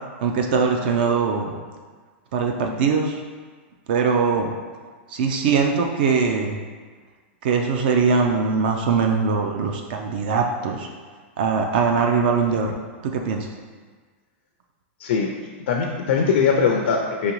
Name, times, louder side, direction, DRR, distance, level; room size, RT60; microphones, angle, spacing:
voice 1, 0.2-1.5 2.3-3.2 3.9-4.5 5.1-6.6 7.4-10.9 11.4-12.7 13.0-13.5, right 5 dB, 50° right, 3 dB, 0.3 m, -21 dB
voice 2, 15.0-15.3 15.7-17.3, left 6 dB, 65° left, 1 dB, 0.4 m, -21 dB
3.7 x 3.0 x 3.0 m, 1.5 s
supercardioid pair, 170°, 7 cm